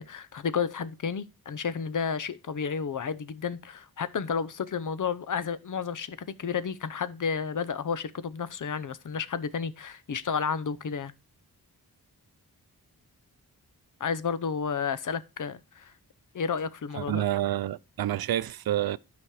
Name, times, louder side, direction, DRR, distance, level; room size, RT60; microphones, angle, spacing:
voice 1, 0.0-11.1 14.0-15.9 16.3-17.2, left 6 dB, 55° left, 0.7 m, -31 dB
voice 2, 16.9-19.0, right 12 dB, 70° right, 0.5 m, -28 dB
12.0 x 5.2 x 4.8 m
wide cardioid pair, 135°, 38 cm